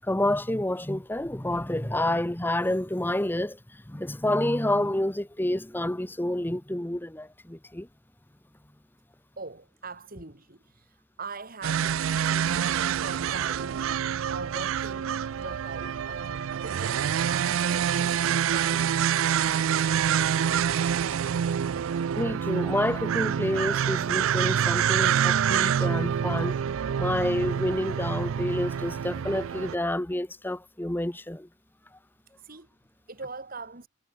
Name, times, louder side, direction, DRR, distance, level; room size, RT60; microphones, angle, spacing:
voice 1, 0.0-7.9 22.2-26.6 27.0-31.5, left 1 dB, 10° left, 1.0 m, -29 dB
voice 2, 9.4-19.1 32.4-32.7 33.1-33.9, right 3 dB, 45° right, 2.6 m, -42 dB
sound 1, 11.6-29.8, right 8 dB, 85° right, 0.4 m, -26 dB
head